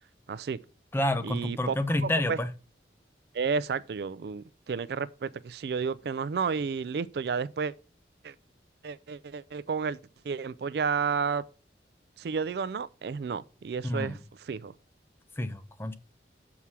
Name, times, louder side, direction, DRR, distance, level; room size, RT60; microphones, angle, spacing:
voice 1, 0.3-0.6 1.2-1.8 2.0-2.4 3.3-7.7 8.2-8.3 8.8-10.0 10.2-11.4 12.2-14.7, right 5 dB, 60° right, 0.3 m, -31 dB
voice 2, 0.9-2.5 13.8-14.2 15.4-15.9, left 1 dB, 15° left, 0.5 m, -29 dB
7.1 x 4.7 x 5.7 m
head